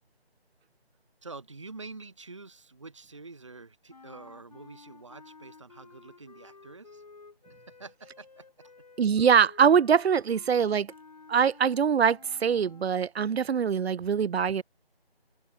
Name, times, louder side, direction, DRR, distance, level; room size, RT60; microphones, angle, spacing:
voice 1, 1.2-7.0 7.7-8.7, right 3 dB, 30° right, 1.2 m, -47 dB
sound 1, 3.9-13.0, left 4 dB, 40° left, 3.4 m, -53 dB
voice 2, 9.0-10.9 11.3-14.6, right 7 dB, 75° right, 0.5 m, -23 dB
figure-of-eight pair, 170°, 31 cm